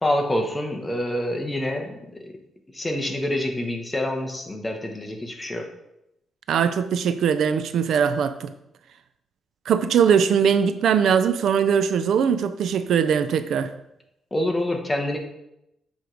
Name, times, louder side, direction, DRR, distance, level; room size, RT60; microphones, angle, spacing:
voice 1, 0.0-2.0 2.2-2.3 2.7-5.7 14.3-15.2, left 1 dB, 10° left, 0.8 m, -26 dB
voice 2, 6.5-8.5 9.7-13.7, right 7 dB, 65° right, 0.3 m, -21 dB
6.9 x 3.1 x 5.0 m
cardioid pair, 150°, 0 cm